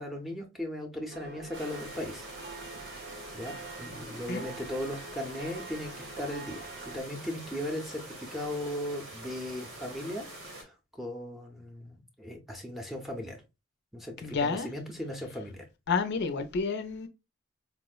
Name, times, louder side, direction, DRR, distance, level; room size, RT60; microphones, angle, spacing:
voice 1, 0.0-2.3 3.3-10.3 10.5-13.4 13.9-15.6, left 1 dB, ahead, 0.5 m, -37 dB
sound 1, 1.1-7.0, right 3 dB, 55° right, 0.7 m, -46 dB
sound 2, 1.5-10.6, right 1 dB, 80° right, 1.1 m, -45 dB
voice 2, 14.2-14.7 15.9-17.1, left 4 dB, 55° left, 0.4 m, -29 dB
4.2 x 2.0 x 2.2 m
head